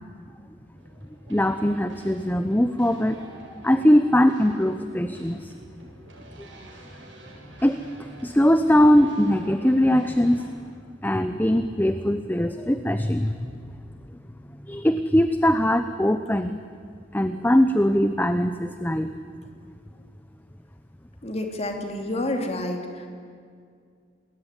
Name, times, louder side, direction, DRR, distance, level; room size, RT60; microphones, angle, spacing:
sound 1, 0.8-10.5, right 1 dB, 75° right, 7.8 m, -46 dB
voice 1, 1.3-3.2 3.5-5.5 7.6-7.8 8.2-10.5 11.0-13.5 14.7-16.6 17.1-19.1, equal, 10° left, 10 dB, 0.8 m, -21 dB
voice 2, 21.2-23.1, left 1 dB, 35° left, 4 dB, 3.0 m, -29 dB
28.0 x 21.0 x 10.0 m, 2.2 s
head